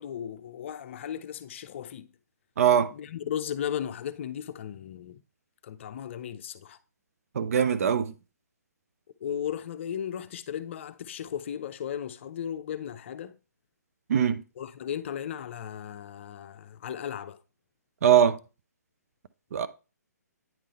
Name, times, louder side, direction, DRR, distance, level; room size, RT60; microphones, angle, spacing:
voice 1, 0.0-2.1 2.9-5.2 5.6-6.8 9.2-13.4 14.6-17.4, left 9 dB, 45° left, 0.6 m, -36 dB
voice 2, 2.6-2.9 7.3-8.1 14.1-14.4 18.0-18.4 19.5-19.7, right 8 dB, 55° right, 0.7 m, -22 dB
9.5 x 3.8 x 4.2 m
hypercardioid pair, 145°, 9 cm